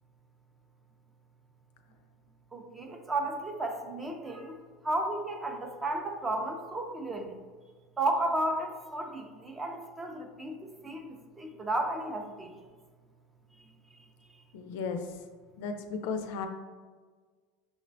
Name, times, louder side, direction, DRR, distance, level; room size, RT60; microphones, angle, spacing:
voice 1, 2.5-4.6 4.8-7.4 8.0-10.6 10.8-12.5, right 2 dB, 15° right, 3 dB, 0.4 m, -33 dB
voice 2, 14.5-15.0 15.6-16.5, left 5 dB, 70° left, 6 dB, 0.4 m, -34 dB
6.0 x 2.1 x 2.6 m, 1.5 s
supercardioid pair, 155°, 0 cm